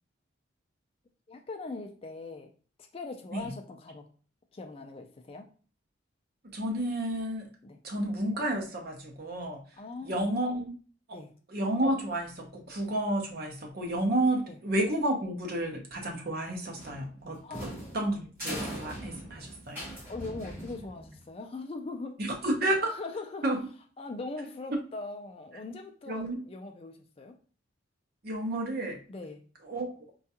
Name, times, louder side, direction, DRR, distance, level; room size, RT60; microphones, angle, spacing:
voice 1, 1.3-2.5 2.8-4.1 4.5-5.5 7.6-7.8 9.8-10.1 11.1-11.3 14.5-14.6 17.4-17.7 20.1-22.3 22.8-23.4 24.0-27.4 29.1-29.5, left 3 dB, 30° left, 5 dB, 0.3 m, -41 dB
voice 2, 6.5-7.5 7.8-9.6 10.1-10.8 11.5-17.4 17.9-19.9 22.2-22.9 23.4-23.6 26.1-26.4 28.2-29.0 29.7-29.9, right 1 dB, 50° right, 1 dB, 0.7 m, -31 dB
sound 1, 16.8-21.2, equal, 10° right, 1.3 m, -40 dB
4.3 x 2.3 x 2.8 m, 0.40 s
head